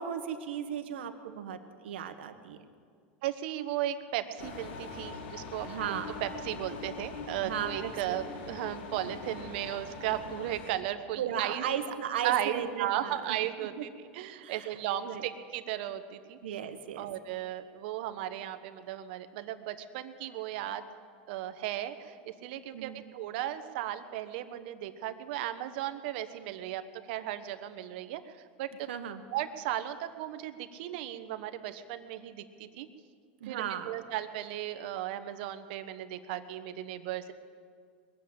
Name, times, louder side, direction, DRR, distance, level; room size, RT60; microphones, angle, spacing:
voice 1, 0.0-2.6 5.6-6.1 7.4-7.9 11.1-13.9 14.4-14.7 15.1-15.2 16.4-17.1 22.7-23.0 28.9-29.2 33.4-33.9, right 9 dB, 90° right, 8 dB, 1.2 m, -36 dB
voice 2, 3.2-11.6 12.2-13.7 14.1-16.4 17.0-20.9 21.3-26.8 27.1-28.9 29.3-32.9 33.5-37.3, right 12 dB, 70° right, 10 dB, 1.1 m, -36 dB
sound 1, 4.4-10.7, left 4 dB, 80° left, 1.8 m, -42 dB
21.5 x 7.8 x 8.7 m, 2.1 s
supercardioid pair, 125°, 6 cm